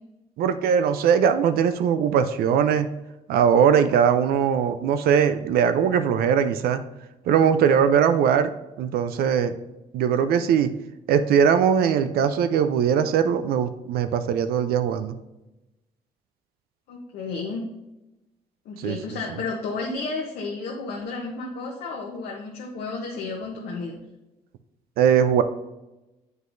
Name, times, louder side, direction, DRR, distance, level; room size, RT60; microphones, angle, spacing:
voice 1, 0.4-2.9 3.3-6.8 7.3-8.5 8.8-9.5 9.9-10.7 11.1-15.2 18.8-19.0 25.0-25.4, right 7 dB, 80° right, 10 dB, 0.4 m, -20 dB
voice 2, 16.9-17.6 18.6-24.0, left 3 dB, 85° left, -1 dB, 0.9 m, -32 dB
7.7 x 5.3 x 2.6 m, 0.98 s
supercardioid pair, 70°, 16 cm